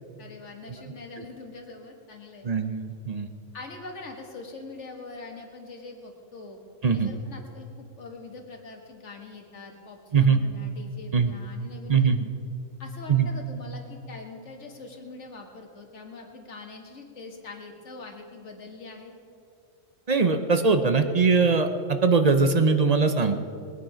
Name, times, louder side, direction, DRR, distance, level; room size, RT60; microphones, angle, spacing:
voice 1, 0.2-2.5 3.5-6.6 6.9-12.2 12.8-19.2, left 3 dB, 60° left, 2 dB, 2.1 m, -43 dB
voice 2, 2.4-3.3 6.8-7.1 10.1-10.4 11.1-11.3 11.9-12.3 13.1-13.3 20.1-23.4, right 5 dB, 40° right, 8 dB, 0.7 m, -21 dB
21.5 x 9.5 x 5.1 m, 2.5 s
omnidirectional pair, 1.4 m